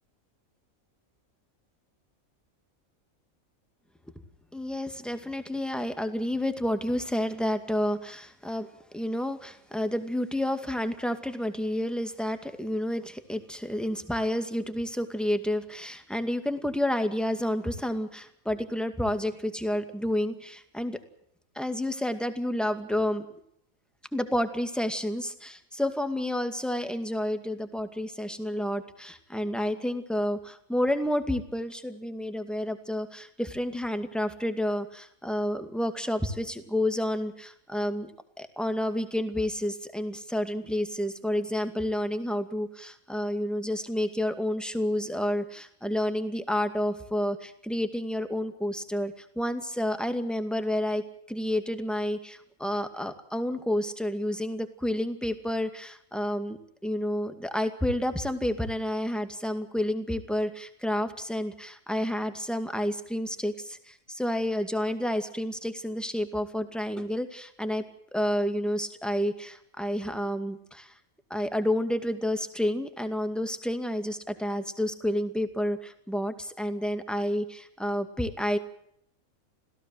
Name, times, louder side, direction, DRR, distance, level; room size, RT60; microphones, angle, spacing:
voice 1, 4.5-8.7 8.9-21.0 21.6-23.2 24.1-38.1 38.4-51.0 51.3-67.8 68.1-70.9 71.3-78.6, left 1 dB, ahead, 8 dB, 2.2 m, -30 dB
27.0 x 17.0 x 7.8 m, 0.71 s
omnidirectional pair, 1.5 m